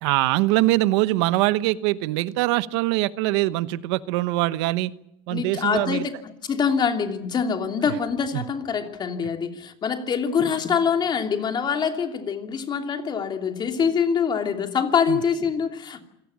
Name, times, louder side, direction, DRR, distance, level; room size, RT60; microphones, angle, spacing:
voice 1, 0.0-4.9 5.3-6.0 8.3-8.4 15.1-15.2, right 18 dB, 85° right, 1.1 m, -23 dB
voice 2, 5.3-16.0, left 6 dB, 30° left, 2.8 m, -25 dB
27.0 x 18.0 x 8.7 m
cardioid pair, 135°, 14 cm